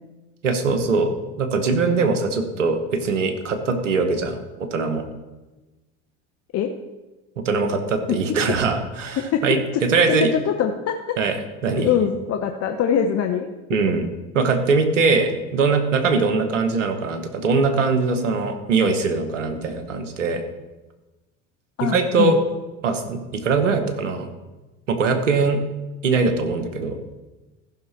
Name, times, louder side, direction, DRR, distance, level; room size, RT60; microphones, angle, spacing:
voice 1, 0.4-1.1 1.4-4.4 4.7-5.0 7.4-10.3 11.2-11.3 11.6-11.9 13.7-14.1 14.3-20.4 21.8-22.4 22.8-24.3 24.9-25.6 26.0-27.0, right 4 dB, 90° right, 7 dB, 1.2 m, -21 dB
voice 2, 9.2-9.5 9.7-11.2 11.8-13.5 21.8-22.4, left 8 dB, 40° left, 5 dB, 0.9 m, -23 dB
15.0 x 5.9 x 4.2 m, 1.1 s
hypercardioid pair, 75°, 36 cm